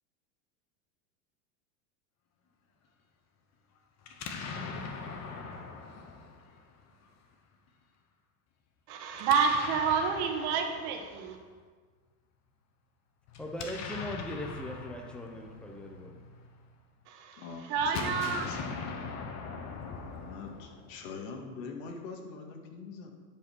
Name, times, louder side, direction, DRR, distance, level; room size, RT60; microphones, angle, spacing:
Explosion, 4.0-7.1 9.1-11.4 13.3-16.7 17.8-21.1, left 4 dB, 35° left, 1.2 m, -41 dB
voice 1, 8.9-11.4 17.1-18.5, right 6 dB, 50° right, 3 dB, 1.7 m, -29 dB
voice 2, 13.4-16.2, left 1 dB, ahead, 2 dB, 1.0 m, -40 dB
voice 3, 17.4-18.6 20.2-23.1, left 4 dB, 55° left, 3 dB, 2.0 m, -43 dB
10.5 x 5.4 x 6.4 m, 1.5 s
supercardioid pair, 125°, 48 cm